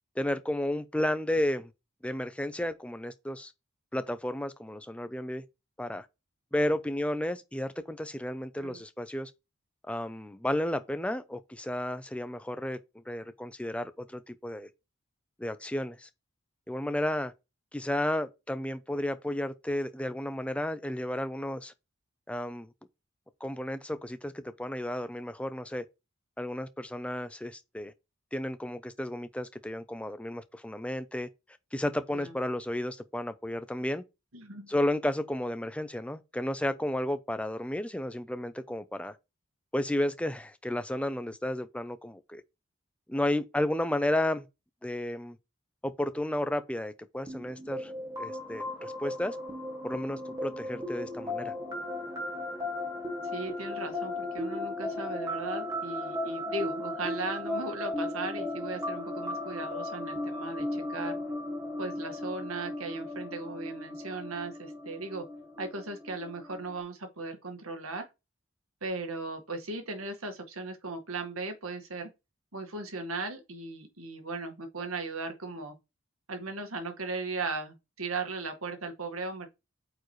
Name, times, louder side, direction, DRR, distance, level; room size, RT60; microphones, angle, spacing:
voice 1, 0.2-1.7 2.0-3.5 3.9-5.4 5.8-6.1 6.5-9.3 9.9-14.7 15.4-16.1 16.7-17.3 17.7-21.7 22.3-22.7 23.4-25.8 26.4-27.9 28.3-31.3 31.7-34.0 34.7-39.2 39.7-42.4 43.1-44.5 44.8-45.4 45.8-47.9 48.2-49.4 49.8-51.5, left 1 dB, 5° left, 0.6 m, -32 dB
voice 2, 34.3-34.7 53.3-61.2 61.8-65.2 65.6-68.0 68.8-72.1 72.5-75.7 76.3-79.5, right 3 dB, 85° right, 1.8 m, -37 dB
sound 1, 47.3-66.8, left 1 dB, 15° right, 1.4 m, -36 dB
8.6 x 4.8 x 3.2 m
head